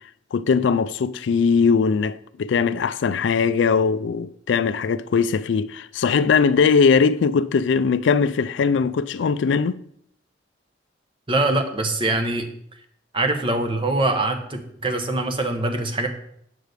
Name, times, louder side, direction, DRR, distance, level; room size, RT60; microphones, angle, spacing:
voice 1, 0.3-9.8, left 5 dB, 85° left, 0.4 m, -20 dB
voice 2, 11.3-12.5 13.1-16.1, right 2 dB, 30° right, 0.9 m, -23 dB
7.7 x 4.8 x 6.6 m
head